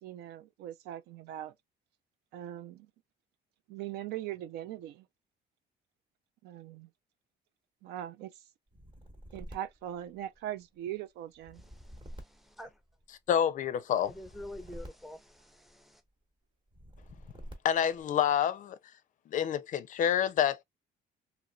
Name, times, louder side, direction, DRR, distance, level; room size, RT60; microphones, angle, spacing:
voice 1, 0.0-1.5 2.3-2.9 3.7-5.1 6.4-6.9 7.8-8.3 9.3-11.6, right 12 dB, 80° right, 0.4 m, -40 dB
sound 1, 8.7-10.7 11.3-13.3 14.0-15.9 16.7-18.0, equal, 30° right, 1.0 m, -49 dB
voice 2, 11.6-12.8 14.0-16.0, left 1 dB, ahead, 0.6 m, -48 dB
voice 3, 13.3-14.1 17.6-18.8 19.3-20.6, left 9 dB, 50° left, 0.4 m, -28 dB
3.0 x 2.9 x 2.2 m
cardioid pair, 110°, 17 cm